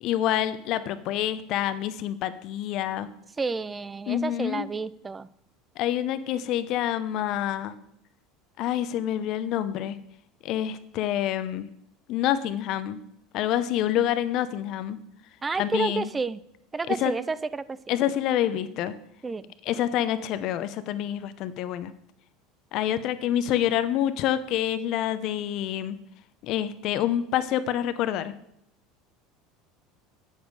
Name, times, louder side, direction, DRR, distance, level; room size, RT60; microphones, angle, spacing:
voice 1, 0.0-3.1 4.1-4.7 5.8-7.7 8.6-10.0 10.4-11.7 12.1-13.0 13.3-15.0 15.6-16.1 16.9-17.1 17.9-18.9 19.7-21.9 22.7-26.0 26.4-28.3, left 11 dB, 55° left, 13 dB, 0.8 m, -27 dB
voice 2, 3.4-5.3 15.4-16.4 16.7-17.8 19.2-19.4, right 4 dB, 20° right, 17 dB, 0.4 m, -30 dB
8.5 x 7.4 x 4.8 m, 0.75 s
supercardioid pair, 120°, 0 cm